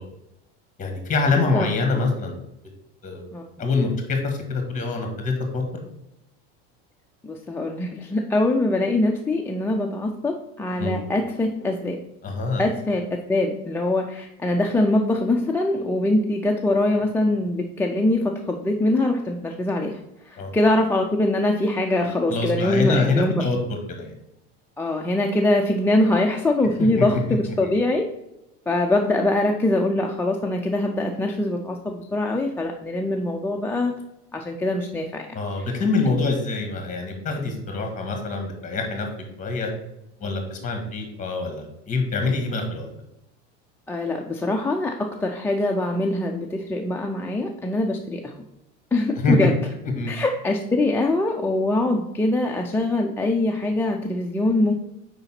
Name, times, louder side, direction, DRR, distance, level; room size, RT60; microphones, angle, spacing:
voice 1, 0.8-2.4 3.0-3.3 3.6-5.6 10.8-10.9 12.2-12.6 20.4-20.5 22.3-23.6 23.9-24.1 26.8-27.1 27.6-27.7 35.3-39.1 39.4-39.7 40.2-42.9 49.2-49.3 50.0-50.1, left 3 dB, 25° left, 3 dB, 1.6 m, -25 dB
voice 2, 7.2-12.0 12.6-23.3 24.8-27.2 27.6-28.0 28.7-33.9 34.3-35.3 43.9-48.4 48.9-49.5 50.1-54.7, left 2 dB, 5° left, 0 dB, 0.3 m, -23 dB
4.9 x 3.9 x 5.8 m, 0.87 s
supercardioid pair, 130°, 32 cm